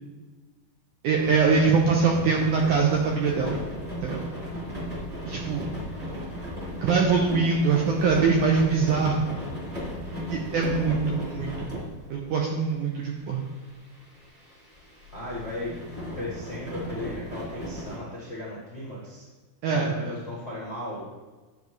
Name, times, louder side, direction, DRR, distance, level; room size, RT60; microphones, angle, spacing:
voice 1, 1.0-3.6 4.0-4.2 5.3-5.7 6.8-9.4 10.3-11.8 12.1-13.4 19.6-20.1, right 5 dB, 80° right, 0 dB, 1.8 m, -23 dB
sound 1, 1.1-12.3 12.7-12.8 13.2-18.0, equal, 25° right, 1.3 m, -36 dB
voice 2, 15.1-15.7 16.1-19.3 19.7-21.0, left 1 dB, 70° left, -7 dB, 0.6 m, -36 dB
10.5 x 7.1 x 3.2 m, 1.3 s
omnidirectional pair, 4.4 m